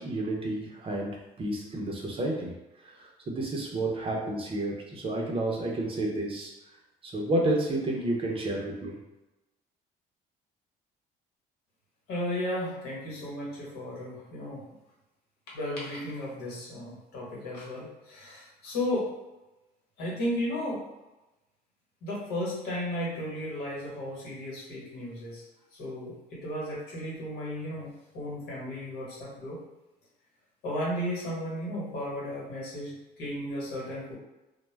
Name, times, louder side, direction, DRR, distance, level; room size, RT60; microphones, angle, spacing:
voice 1, 0.0-2.5 2.8-6.5 7.0-9.0, right 2 dB, 35° right, -1 dB, 0.6 m, -30 dB
voice 2, 12.1-14.6 15.5-19.1 20.0-20.8 22.0-25.4 25.8-29.6 30.6-34.1, left 1 dB, 75° left, -5 dB, 1.2 m, -34 dB
2.1 x 2.1 x 3.2 m, 1.0 s
cardioid pair, 110°, 17 cm